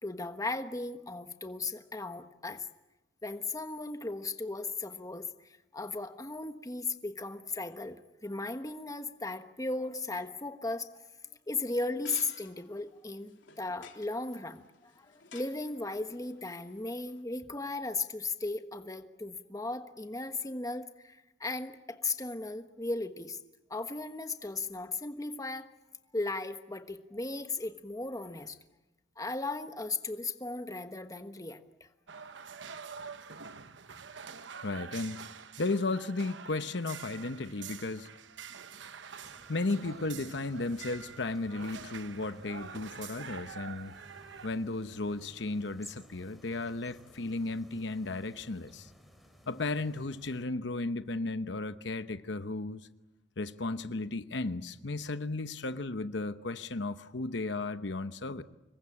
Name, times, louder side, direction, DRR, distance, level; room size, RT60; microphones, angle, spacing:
voice 1, 0.0-2.7 3.2-11.1 11.5-23.4 23.7-25.7 26.1-28.6 29.2-31.9, left 3 dB, 20° left, 1.3 m, -36 dB
sound 1, 11.7-17.2, left 7 dB, 85° left, 3.6 m, -54 dB
sound 2, 32.1-44.5, right 6 dB, 75° right, 1.0 m, -46 dB
voice 2, 34.6-35.2 35.6-38.1 39.5-44.0 44.4-48.9 49.5-52.9 53.4-58.4, left 2 dB, 70° left, 1.0 m, -34 dB
sound 3, 39.2-50.4, equal, ahead, 3.8 m, -57 dB
26.5 x 22.0 x 8.7 m
head